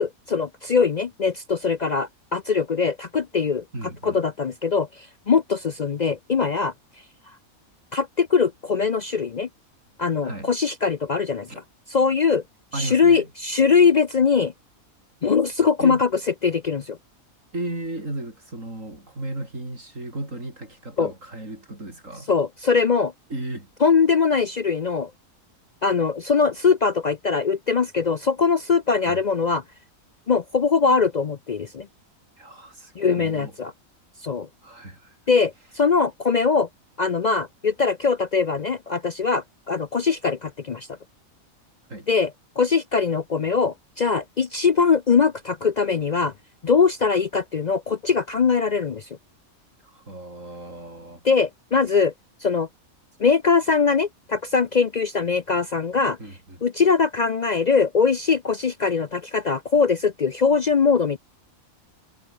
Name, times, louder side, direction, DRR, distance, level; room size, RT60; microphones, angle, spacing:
voice 1, 0.0-3.6 4.0-6.7 7.9-9.5 10.0-11.6 11.9-12.4 12.7-14.5 15.2-16.1 16.4-17.0 21.0-21.1 22.3-23.1 23.8-25.1 25.8-29.6 30.3-31.9 33.0-33.7 34.2-34.5 35.3-36.7 37.0-40.9 42.1-46.3 46.6-49.1 51.2-52.1 52.4-52.7 53.2-56.2 56.6-61.2, left 5 dB, 55° left, 0.5 m, -21 dB
voice 2, 3.7-4.2 10.2-10.5 11.5-11.6 12.7-13.3 15.8-16.1 17.5-22.3 23.3-23.7 29.0-29.2 32.4-33.5 34.6-35.2 41.9-42.1 49.8-51.2 56.2-56.6, right 2 dB, 60° right, 7.4 m, -35 dB
omnidirectional pair, 1.5 m